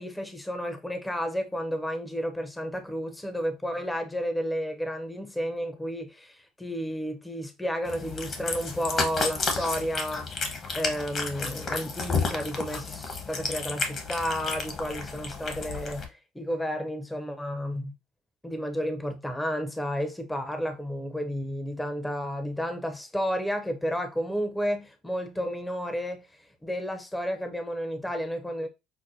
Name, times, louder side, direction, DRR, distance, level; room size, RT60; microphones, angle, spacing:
voice 1, 0.0-10.3 10.7-17.9 18.4-26.3 26.6-28.7, equal, 10° left, 0.7 m, -32 dB
Cat, 7.9-16.0, left 4 dB, 45° left, 1.2 m, -32 dB
6.1 x 2.1 x 2.7 m
supercardioid pair, 85°, 0 cm